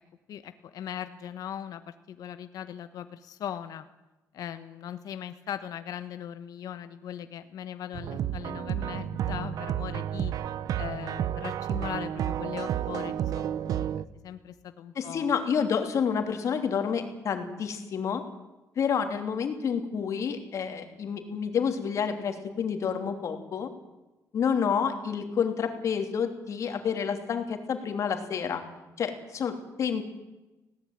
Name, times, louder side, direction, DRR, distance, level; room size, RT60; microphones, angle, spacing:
voice 1, 0.3-3.9 4.3-10.3 10.8-13.8 14.2-15.3, left 10 dB, 70° left, 10 dB, 1.2 m, -39 dB
sound 1, 7.9-14.0, right 10 dB, 70° right, 0.9 m, -31 dB
voice 2, 14.9-18.2 18.8-23.7 24.3-28.6 29.0-30.0, left 7 dB, 55° left, 6 dB, 3.1 m, -29 dB
20.0 x 17.5 x 9.2 m, 1.1 s
cardioid pair, 140°, 6 cm